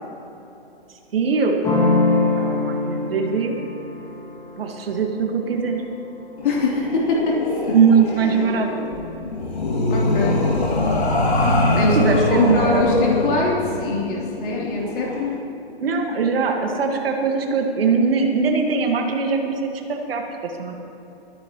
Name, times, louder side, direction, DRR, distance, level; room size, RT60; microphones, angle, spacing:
voice 1, 1.1-1.6 2.2-3.5 4.6-5.8 7.7-8.7 11.7-12.9 15.8-20.7, right 5 dB, 65° right, 3 dB, 1.7 m, -21 dB
sound 1, 1.6-7.2, left 3 dB, 10° left, 1.5 m, -25 dB
sound 2, 6.4-15.3, left 2 dB, 80° left, 2.4 m, -23 dB
voice 2, 6.4-7.7 8.2-8.4 9.9-10.5 11.7-15.4, left 3 dB, 55° left, -4 dB, 3.2 m, -23 dB
28.5 x 10.5 x 3.0 m, 2.9 s
hypercardioid pair, 145°, 32 cm